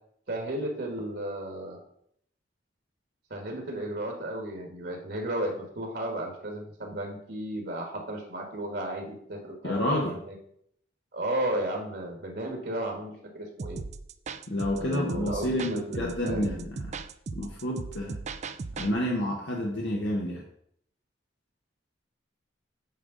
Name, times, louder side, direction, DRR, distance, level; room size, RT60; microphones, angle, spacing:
voice 1, 0.3-1.8 3.3-10.4 11.1-13.8 14.7-16.7, right 1 dB, 65° right, 2 dB, 1.6 m, -34 dB
voice 2, 9.6-10.2 14.5-16.8 17.3-18.2 18.8-20.4, left 1 dB, 70° left, -2 dB, 1.1 m, -29 dB
sound 1, 13.6-18.9, right 4 dB, 40° right, 0.4 m, -38 dB
8.5 x 5.1 x 3.9 m, 0.69 s
head